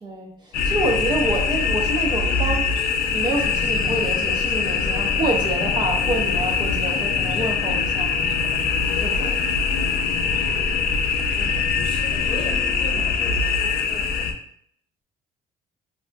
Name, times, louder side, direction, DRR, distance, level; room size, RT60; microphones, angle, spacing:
voice 1, 0.0-2.6 3.0-8.2 8.9-9.4, right 2 dB, 25° right, 0 dB, 0.7 m, -27 dB
sound 1, 0.5-14.3, left 5 dB, 60° left, 0.5 m, -23 dB
voice 2, 11.3-14.3, left 2 dB, 30° left, 0 dB, 0.7 m, -38 dB
3.4 x 2.6 x 2.2 m, 0.64 s
cardioid pair, 110°, 17 cm